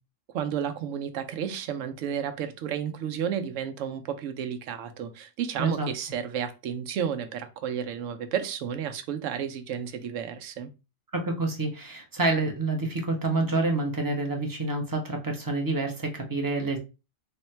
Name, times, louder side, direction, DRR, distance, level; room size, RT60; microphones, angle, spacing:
voice 1, 0.3-10.7, right 8 dB, 75° right, 1.0 m, -32 dB
voice 2, 5.6-5.9 11.1-16.8, right 2 dB, 20° right, 0.6 m, -28 dB
3.5 x 2.1 x 4.3 m
omnidirectional pair, 1.3 m